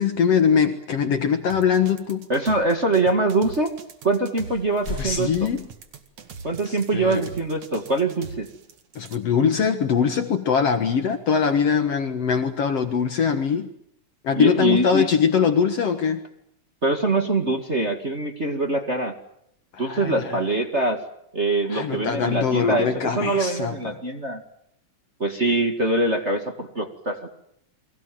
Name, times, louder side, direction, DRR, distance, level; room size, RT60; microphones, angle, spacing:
voice 1, 0.0-2.3 5.0-5.7 6.7-7.3 9.0-13.7 14.2-16.2 19.7-20.4 21.7-24.0, left 6 dB, 60° left, 7 dB, 2.4 m, -22 dB
sound 1, 1.5-9.2, right 5 dB, 70° right, 3.3 m, -42 dB
voice 2, 2.3-3.7 4.0-5.5 6.4-8.5 14.3-15.1 16.8-19.1 19.8-21.0 21.3-24.4 25.2-27.3, right 2 dB, 25° right, 4 dB, 2.0 m, -23 dB
sound 2, 4.0-4.2 4.4-6.5, left 3 dB, 35° left, 6.3 m, -38 dB
30.0 x 23.5 x 7.7 m, 0.74 s
omnidirectional pair, 3.4 m